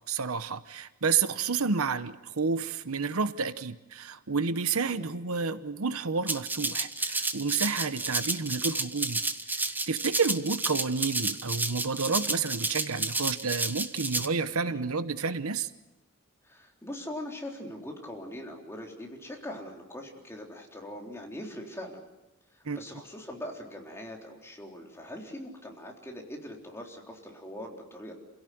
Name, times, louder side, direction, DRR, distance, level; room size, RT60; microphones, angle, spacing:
voice 1, 0.1-9.2 9.5-15.7 22.6-22.8, right 5 dB, 85° right, 12 dB, 1.0 m, -30 dB
Rattle (instrument), 6.3-14.3, right 2 dB, 10° right, 1.0 m, -31 dB
voice 2, 16.4-22.0 22.5-28.1, left 1 dB, 10° left, 0 dB, 3.8 m, -42 dB
28.5 x 17.0 x 9.4 m, 0.97 s
head